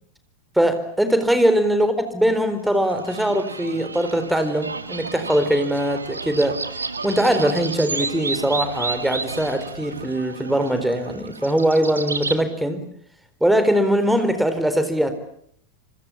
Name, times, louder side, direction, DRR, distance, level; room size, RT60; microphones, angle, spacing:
voice 1, 0.6-6.6 7.0-12.8 13.4-15.1, equal, 5° right, 10 dB, 4.1 m, -21 dB
sound 1, 2.7-12.4, right 4 dB, 75° right, 1.9 m, -31 dB
27.0 x 25.5 x 7.2 m, 0.66 s
figure-of-eight pair, 90°, 0 cm